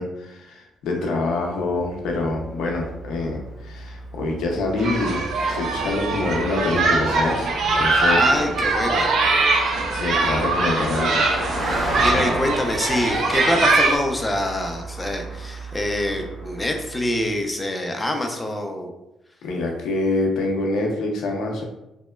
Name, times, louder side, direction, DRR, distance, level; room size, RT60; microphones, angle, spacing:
voice 1, 0.0-8.6 9.9-11.3 19.4-21.6, left 2 dB, 80° left, 1 dB, 0.5 m, -26 dB
Car passing by, 1.6-17.3, right 1 dB, 15° right, 1.1 m, -34 dB
sound 1, 4.8-14.0, right 3 dB, 70° right, 0.4 m, -22 dB
voice 2, 8.0-9.1 11.8-18.9, left 1 dB, 15° left, 3 dB, 0.4 m, -25 dB
2.9 x 2.0 x 2.2 m, 0.91 s
cardioid pair, 90°, 0 cm